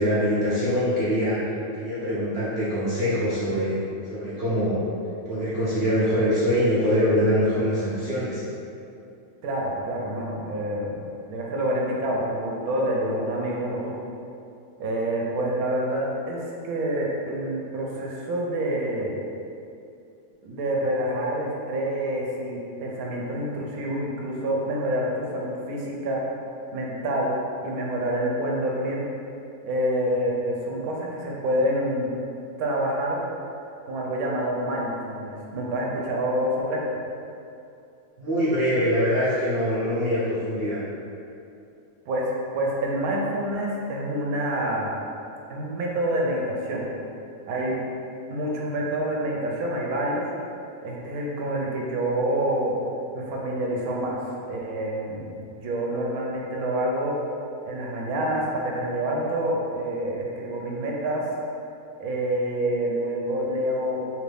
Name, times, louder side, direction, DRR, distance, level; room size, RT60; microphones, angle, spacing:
voice 1, 0.0-1.4 1.8-3.8 4.1-4.8 5.3-8.4 38.2-40.8, equal, 60° right, -10 dB, 0.7 m, -23 dB
voice 2, 9.4-14.0 14.8-19.2 20.4-26.2 26.7-27.3 27.6-29.0 29.6-32.1 32.6-33.2 33.9-37.0 42.1-42.2 42.5-44.9 45.5-46.9 47.5-47.8 48.3-50.2 50.8-52.7 53.1-54.2 54.5-57.2 57.6-61.2 62.0-64.0, right 1 dB, 80° right, -2 dB, 1.1 m, -27 dB
2.9 x 2.5 x 3.3 m, 2.6 s
omnidirectional pair, 1.5 m